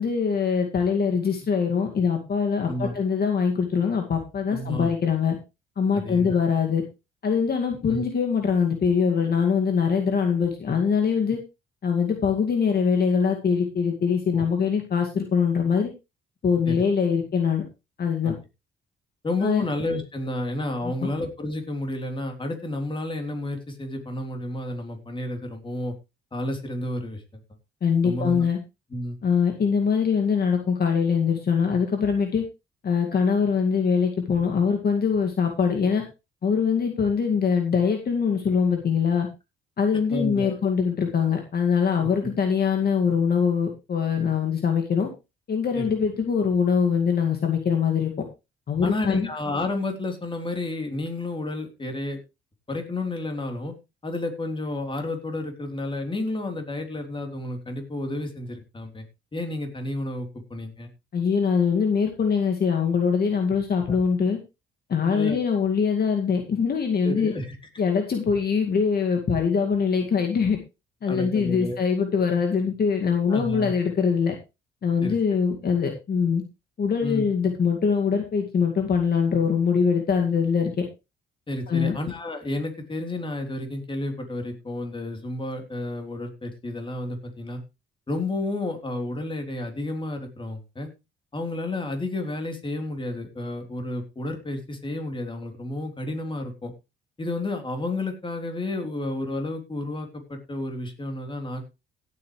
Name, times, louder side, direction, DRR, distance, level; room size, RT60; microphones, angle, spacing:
voice 1, 0.0-5.4 5.8-6.8 7.2-11.4 11.8-15.9 16.4-17.6 18.0-18.3 19.4-19.6 21.0-21.1 27.8-28.6 29.2-32.4 32.8-36.0 36.4-39.3 39.8-45.1 45.5-48.1 48.7-49.3 61.1-64.4 64.9-67.3 67.8-70.6 71.0-74.3 74.8-76.4 76.8-80.8 81.7-82.0, left 6 dB, 50° left, 3 dB, 2.2 m, -23 dB
voice 2, 4.5-4.9 6.1-6.4 7.9-8.1 14.4-14.5 16.7-16.8 18.2-18.3 19.2-25.9 26.3-27.2 28.0-28.4 28.9-29.2 40.1-40.6 42.0-42.3 45.8-45.9 48.8-52.2 52.7-53.7 54.0-59.0 59.3-60.9 63.9-64.0 65.1-65.4 67.0-67.5 69.6-69.7 71.1-71.8 73.3-73.7 75.0-75.2 77.0-77.3 81.5-87.6 88.1-90.9 91.3-96.7 97.2-101.7, left 2 dB, 25° left, 4 dB, 3.6 m, -31 dB
17.0 x 8.5 x 3.3 m, 0.26 s
cardioid pair, 90°, 20 cm